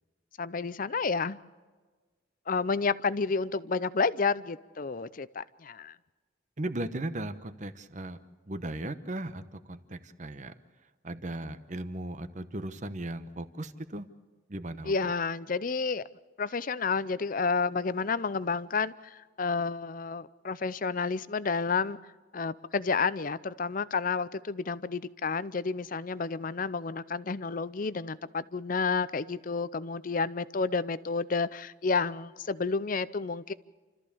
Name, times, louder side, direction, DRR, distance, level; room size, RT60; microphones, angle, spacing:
voice 1, 0.4-1.4 2.5-5.9 14.9-16.0 16.4-22.0 22.3-33.5, left 4 dB, 45° left, 17 dB, 0.6 m, -30 dB
voice 2, 6.6-8.2 8.5-9.4 9.7-10.5 11.0-14.1 14.5-14.9, right 1 dB, 40° right, 12 dB, 1.0 m, -37 dB
29.0 x 14.0 x 7.0 m, 1.4 s
head